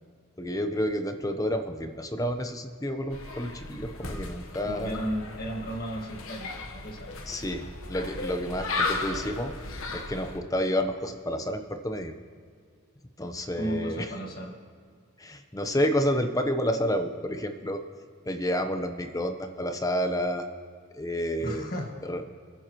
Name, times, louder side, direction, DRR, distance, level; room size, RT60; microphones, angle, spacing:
voice 1, 0.4-5.0 7.3-9.5 9.9-12.1 13.2-14.1 15.2-17.8 18.3-20.5 20.9-21.7 22.0-22.2, equal, 15° left, 7 dB, 0.8 m, -30 dB
sound 1, 3.1-10.4, left 3 dB, 70° left, 1.2 m, -35 dB
voice 2, 4.6-7.1 13.5-14.5 21.4-21.9, equal, 45° left, 1 dB, 1.8 m, -34 dB
27.5 x 10.0 x 3.1 m, 2.1 s
head